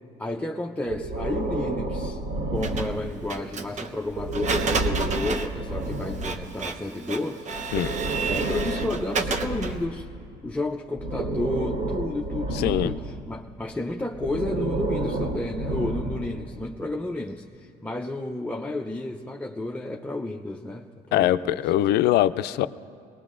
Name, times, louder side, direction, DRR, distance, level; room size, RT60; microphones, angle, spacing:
voice 1, 0.2-2.2 2.5-7.8 8.2-10.1 10.4-21.6, left 2 dB, 10° left, 0 dB, 0.5 m, -32 dB
Breathing, 0.9-3.3 4.1-6.4 7.5-10.4 11.0-13.2 14.1-16.4, right 2 dB, 60° right, 3.8 m, -30 dB
Printer, 2.6-9.8, right 4 dB, 45° right, 0.9 m, -32 dB
voice 2, 12.5-12.9 21.1-22.7, left 13 dB, 75° left, 14 dB, 0.4 m, -22 dB
22.0 x 19.5 x 2.5 m, 2.4 s
cardioid pair, 110°, 17 cm